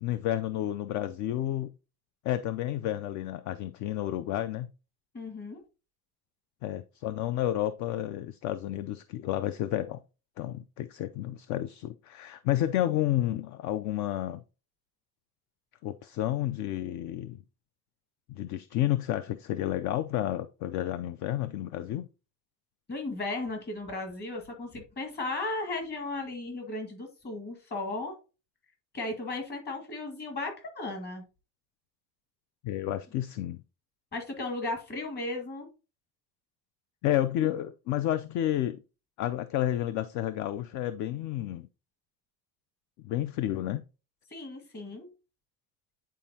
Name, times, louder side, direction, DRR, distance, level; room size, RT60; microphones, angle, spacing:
voice 1, 0.0-1.7 2.2-4.7 6.6-10.0 10.4-14.4 15.8-17.4 18.3-22.1 32.6-33.6 37.0-38.8 39.2-41.7 43.0-43.8, left 13 dB, 55° left, 0.4 m, -31 dB
voice 2, 5.1-5.6 22.9-28.2 28.9-31.2 32.9-33.0 34.1-35.7 44.3-45.1, left 2 dB, 25° left, 1.9 m, -35 dB
9.2 x 4.4 x 2.7 m
cardioid pair, 165°, 36 cm